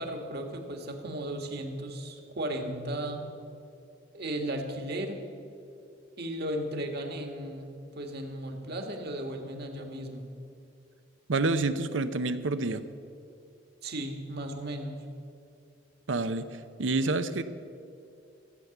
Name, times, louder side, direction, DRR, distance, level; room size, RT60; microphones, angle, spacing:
voice 1, 0.0-3.2 4.1-5.2 6.2-10.3 13.8-14.9, right 1 dB, 55° right, 4 dB, 1.7 m, -35 dB
voice 2, 11.3-12.8 16.1-17.4, right 3 dB, 85° right, 11 dB, 0.7 m, -28 dB
15.5 x 8.1 x 7.1 m, 2.6 s
head